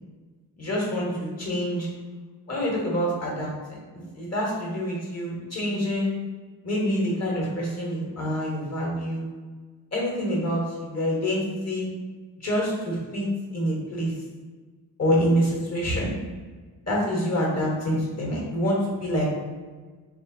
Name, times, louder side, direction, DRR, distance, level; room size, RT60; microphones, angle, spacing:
voice 1, 0.6-1.9 2.5-3.5 3.9-6.1 6.6-9.2 9.9-11.9 12.4-14.1 15.0-16.1 16.9-19.2, equal, 35° left, -4 dB, 1.2 m, -26 dB
3.0 x 2.0 x 2.6 m, 1.4 s
cardioid pair, 55°, 44 cm